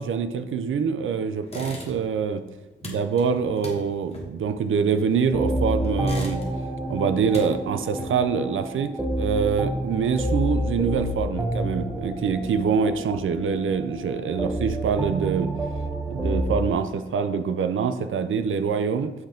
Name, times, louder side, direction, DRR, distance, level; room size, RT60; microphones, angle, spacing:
voice 1, 0.0-2.4 2.8-6.4 6.9-15.5 16.1-19.1, right 6 dB, 80° right, 10 dB, 0.4 m, -25 dB
sound 1, 1.4-2.2 2.5-5.4 5.8-6.8 7.1-8.4, left 1 dB, 30° left, 1.1 m, -39 dB
sound 2, 5.3-16.7, right 1 dB, 10° right, 0.6 m, -29 dB
7.9 x 3.4 x 3.7 m, 1.1 s
wide cardioid pair, 155°, 20 cm